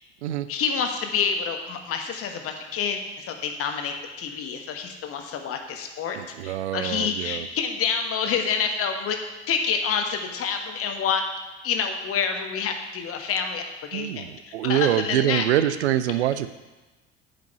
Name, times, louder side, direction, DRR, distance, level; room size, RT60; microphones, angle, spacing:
voice 1, 0.5-6.2 6.4-9.2 9.5-11.2 11.6-13.6 13.9-15.4, left 6 dB, 40° left, 5 dB, 1.3 m, -28 dB
voice 2, 6.1-7.5 13.9-16.5, right 12 dB, 70° right, 13 dB, 0.5 m, -25 dB
9.0 x 5.2 x 7.1 m, 1.2 s
figure-of-eight pair, 60°, 34 cm